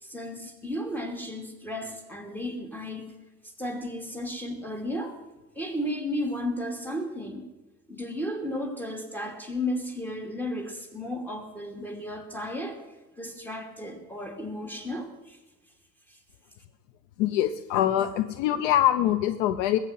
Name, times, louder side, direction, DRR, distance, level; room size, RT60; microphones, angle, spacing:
voice 1, 0.0-3.1 3.4-5.2 5.5-7.5 7.9-12.8 13.2-15.4 16.1-16.2, left 1 dB, 5° left, 3 dB, 2.7 m, -34 dB
voice 2, 17.2-19.8, left 12 dB, 50° left, 10 dB, 0.9 m, -24 dB
20.0 x 8.2 x 7.7 m, 1.1 s
figure-of-eight pair, 85°, 49 cm